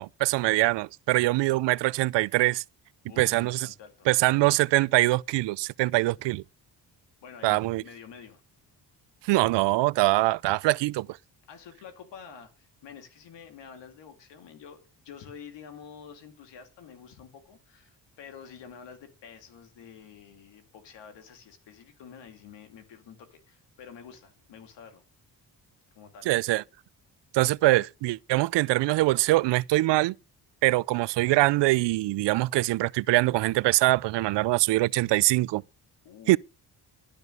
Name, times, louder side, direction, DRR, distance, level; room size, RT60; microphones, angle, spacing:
voice 1, 0.0-2.6 3.2-3.7 4.1-6.4 7.4-7.8 9.2-11.1 26.3-26.6 27.3-30.1 30.6-35.6 36.3-36.4, right 19 dB, 85° right, 0.5 m, -23 dB
voice 2, 3.1-4.5 5.9-6.3 7.2-8.4 11.5-25.0 25.9-26.3 36.0-36.4, left 7 dB, 85° left, 2.7 m, -48 dB
12.5 x 5.1 x 7.9 m
cardioid pair, 100°, 41 cm